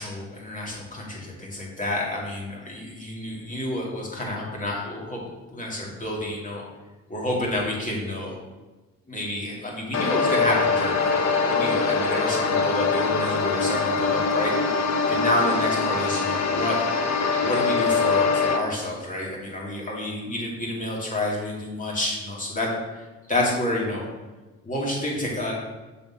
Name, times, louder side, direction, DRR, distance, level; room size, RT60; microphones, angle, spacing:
voice 1, 0.0-5.2 5.5-6.6 7.1-8.3 9.1-11.1 11.5-14.5 15.1-16.8 17.4-22.7 23.3-24.1 24.6-25.5, left 1 dB, 25° left, -3 dB, 2.5 m, -29 dB
sound 1, 9.9-18.6, left 4 dB, 60° left, 1.0 m, -23 dB
6.8 x 4.3 x 5.7 m, 1.2 s
cardioid pair, 90°, 30 cm